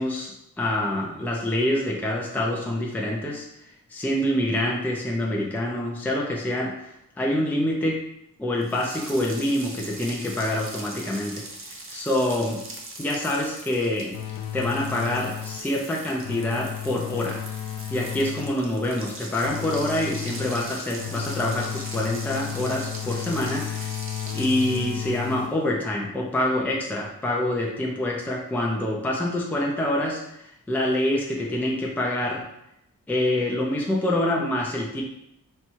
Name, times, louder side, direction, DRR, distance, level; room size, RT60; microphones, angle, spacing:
voice 1, 0.0-3.5 3.9-8.0 8.4-11.5 11.9-12.6 13.0-14.2 14.5-17.4 17.9-23.9 24.3-32.4 33.1-35.0, left 1 dB, 5° left, -2 dB, 0.5 m, -26 dB
sound 1, 8.6-25.4, right 2 dB, 40° right, 0.7 m, -41 dB
sound 2, 14.1-15.8 16.2-18.7 19.4-25.8, left 11 dB, 80° left, 0.5 m, -34 dB
4.2 x 2.3 x 4.5 m, 0.80 s
wide cardioid pair, 140°, 34 cm